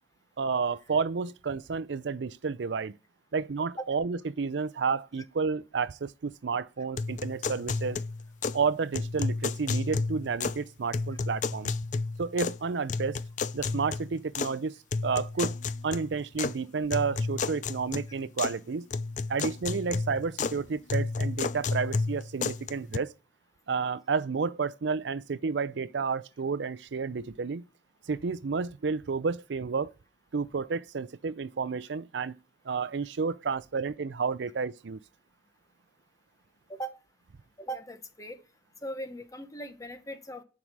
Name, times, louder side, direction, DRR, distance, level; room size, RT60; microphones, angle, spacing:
voice 1, 0.4-2.9 3.3-8.0 8.5-11.7 12.2-13.2 13.5-14.7 15.0-15.6 15.8-18.9 19.3-23.1 23.7-27.6 28.1-29.9 30.3-32.4 32.7-35.0, right 5 dB, 70° right, 0.5 m, -31 dB
sound 1, 7.0-8.6 8.9-10.6 10.9-12.6 12.9-14.5 14.9-16.5 16.9-18.6 18.9-20.6 20.9-23.0, left 4 dB, 40° left, 0.4 m, -32 dB
voice 2, 37.6-38.4 38.8-40.4, right 1 dB, 20° left, 1.0 m, -39 dB
11.0 x 4.9 x 6.1 m
head